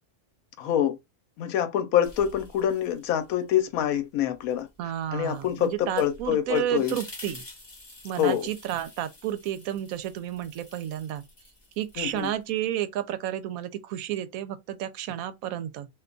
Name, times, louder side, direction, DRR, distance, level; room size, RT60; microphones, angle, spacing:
voice 1, 0.6-1.0 1.4-4.7 5.1-6.9 8.2-8.5 12.0-12.3, left 10 dB, 80° left, 1.1 m, -26 dB
sound 1, 2.0-3.6 3.9-12.6, left 2 dB, 25° left, 0.7 m, -49 dB
voice 2, 4.8-7.4 8.0-11.2 11.8-15.9, right 11 dB, 80° right, 1.0 m, -31 dB
2.6 x 2.2 x 3.7 m
omnidirectional pair, 1.5 m